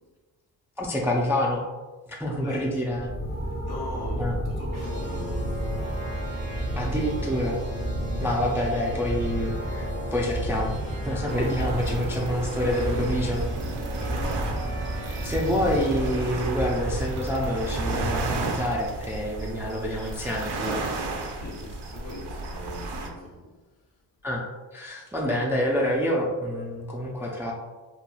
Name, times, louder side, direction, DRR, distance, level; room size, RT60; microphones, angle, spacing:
voice 1, 0.8-1.6 2.2-3.1 4.1-4.4 6.8-7.6 8.2-10.7 11.0-13.5 15.1-20.9 24.2-24.4 24.7-27.5, equal, 5° right, -2 dB, 0.3 m, -27 dB
voice 2, 2.4-2.8 3.6-5.7 13.5-14.6 21.0-23.5, left 1 dB, 55° left, -2 dB, 0.8 m, -40 dB
sound 1, 2.9-18.9, right 1 dB, 20° left, 0.6 m, -32 dB
sound 2, 4.7-16.2, right 1 dB, 90° right, 1.0 m, -39 dB
sound 3, 11.3-23.1, right 3 dB, 65° right, 0.6 m, -34 dB
3.0 x 2.3 x 2.2 m, 1.3 s
supercardioid pair, 55°, 45 cm